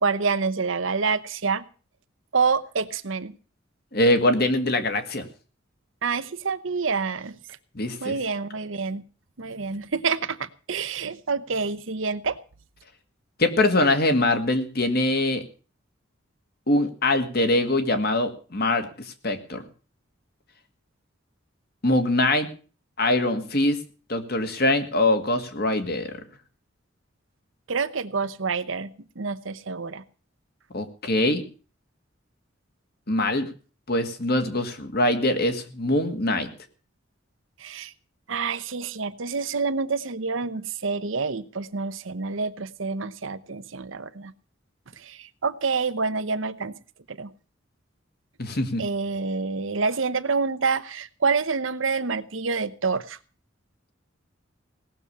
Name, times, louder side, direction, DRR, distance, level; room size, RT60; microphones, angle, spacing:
voice 1, 0.0-1.6 2.3-3.3 6.0-7.4 8.0-9.0 9.4-12.4 27.7-28.9 29.2-30.0 37.6-37.9 38.3-44.3 45.0-46.7 47.1-47.3 48.8-53.2, right 4 dB, 85° right, 13 dB, 1.0 m, -27 dB
voice 2, 3.9-5.3 7.7-8.2 13.4-15.4 16.7-18.9 19.2-19.6 21.8-22.5 23.0-23.8 24.1-26.1 30.7-31.4 33.1-33.5 33.9-36.5 48.4-48.8, left 1 dB, 55° left, 8 dB, 2.0 m, -23 dB
17.5 x 7.0 x 8.6 m, 0.39 s
head